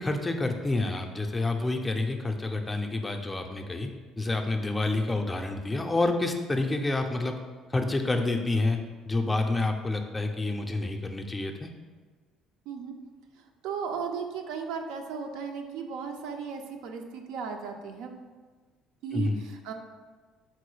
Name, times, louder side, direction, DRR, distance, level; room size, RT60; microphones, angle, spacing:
voice 1, 0.0-3.9 4.2-7.4 7.7-8.8 9.1-11.7 19.1-19.4, left 2 dB, 15° left, 4 dB, 0.3 m, -28 dB
voice 2, 13.4-18.1 19.0-19.7, right 6 dB, 80° right, 4 dB, 0.3 m, -36 dB
4.0 x 2.2 x 3.1 m, 1.4 s
supercardioid pair, 90°, 0 cm